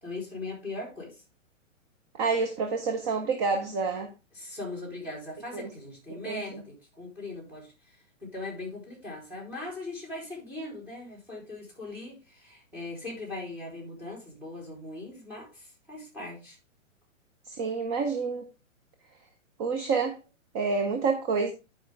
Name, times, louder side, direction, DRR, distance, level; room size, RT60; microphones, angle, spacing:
voice 1, 0.0-1.2 4.3-7.7 8.2-16.6, left 2 dB, 5° right, 3.3 m, -40 dB
voice 2, 2.2-4.1 5.5-5.7 6.1-6.6 17.5-18.5 19.6-20.2 20.5-21.5, right 4 dB, 20° right, 0.6 m, -28 dB
11.0 x 5.0 x 3.4 m
hypercardioid pair, 150°, 40 cm